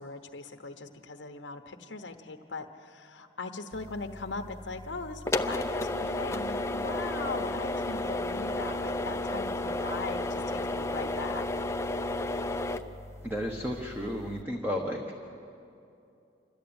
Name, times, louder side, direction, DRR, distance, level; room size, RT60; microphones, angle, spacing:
voice 1, 0.0-11.5, left 3 dB, 90° left, 5 dB, 1.1 m, -39 dB
sound 1, 3.7-14.4, left 2 dB, 15° left, 0.6 m, -33 dB
voice 2, 13.2-15.0, equal, 10° right, 0 dB, 1.3 m, -32 dB
27.5 x 13.0 x 8.8 m, 2.6 s
head